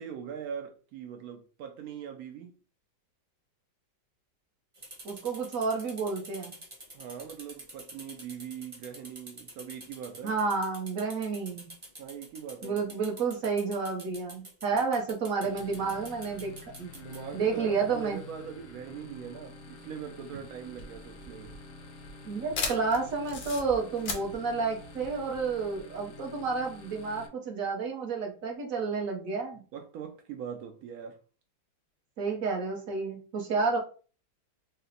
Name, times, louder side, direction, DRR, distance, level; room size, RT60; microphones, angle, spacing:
voice 1, 0.0-2.5 6.9-10.3 12.0-13.0 14.7-14.8 16.9-21.5 29.5-31.2, right 8 dB, 85° right, 4 dB, 0.7 m, -42 dB
sound 1, 4.7-17.2, right 1 dB, 25° right, 0.6 m, -47 dB
voice 2, 5.0-6.5 10.2-11.7 12.6-16.5 16.8-16.9 17.3-18.2 22.2-29.6 32.2-33.8, right 4 dB, 55° right, 2 dB, 1.0 m, -30 dB
sound 2, 15.4-27.3, left 3 dB, 60° left, 0.8 m, -48 dB
sound 3, 20.7-25.8, left 4 dB, 85° left, 0.5 m, -38 dB
4.1 x 2.1 x 3.9 m, 0.38 s
omnidirectional pair, 2.1 m